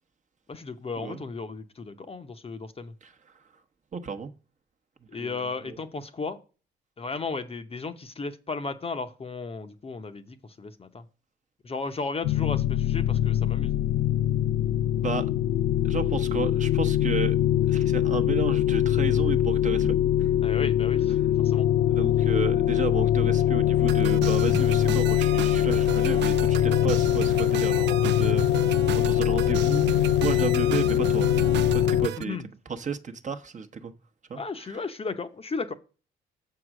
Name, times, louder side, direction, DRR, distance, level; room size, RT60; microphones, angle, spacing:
voice 1, 0.5-2.9 5.1-6.4 7.0-11.1 11.6-13.8 20.4-21.7 32.2-32.4 34.3-35.7, left 4 dB, 30° left, 0.8 m, -35 dB
voice 2, 3.9-4.3 5.1-5.4 5.7-5.8 15.0-15.2 15.8-17.4 17.7-20.4 21.8-28.4 28.9-29.9 30.2-31.3 31.7-32.4 32.7-33.9 34.3-34.8, right 5 dB, 40° right, 1.0 m, -33 dB
sound 1, 12.2-32.1, left 12 dB, 80° left, 0.4 m, -23 dB
sound 2, 23.9-32.2, right 12 dB, 60° right, 0.4 m, -34 dB
7.1 x 4.8 x 6.2 m
cardioid pair, 90°, 20 cm